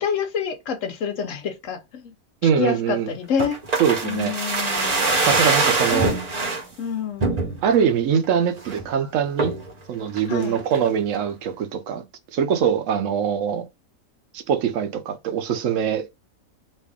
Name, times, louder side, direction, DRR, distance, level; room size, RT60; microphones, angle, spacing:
voice 1, 0.0-2.1 2.4-3.6 4.0-5.1 5.9-6.1 6.8-7.3 10.3-10.6, left 6 dB, 70° left, 1.0 m, -27 dB
voice 2, 2.4-3.1 3.8-4.4 5.3-6.2 7.6-9.6 9.9-12.0 12.3-13.7 14.3-16.1, right 8 dB, 70° right, 0.9 m, -23 dB
sound 1, 3.4-6.6 7.2-7.8 8.2-8.3 8.6-8.9 9.4-9.7 10.2-10.9 11.1-11.2, right 3 dB, 35° right, 0.7 m, -23 dB
3.1 x 2.5 x 3.5 m
omnidirectional pair, 1.5 m